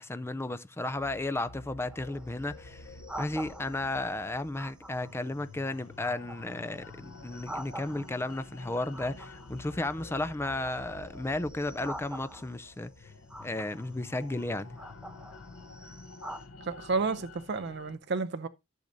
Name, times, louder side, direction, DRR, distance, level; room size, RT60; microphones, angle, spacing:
voice 1, 0.0-2.9 3.2-13.1 13.4-14.8, left 2 dB, 10° left, 0.5 m, -34 dB
sound 1, 1.0-18.0, left 3 dB, 85° left, 0.9 m, -49 dB
sound 2, 1.8-4.0 4.5-5.3 5.7-8.4 8.9-10.0 10.3-12.7 13.3-14.0 14.6-16.5, right 1 dB, 5° right, 0.8 m, -45 dB
voice 2, 16.6-18.5, right 4 dB, 55° right, 0.6 m, -31 dB
13.5 x 6.5 x 2.6 m
head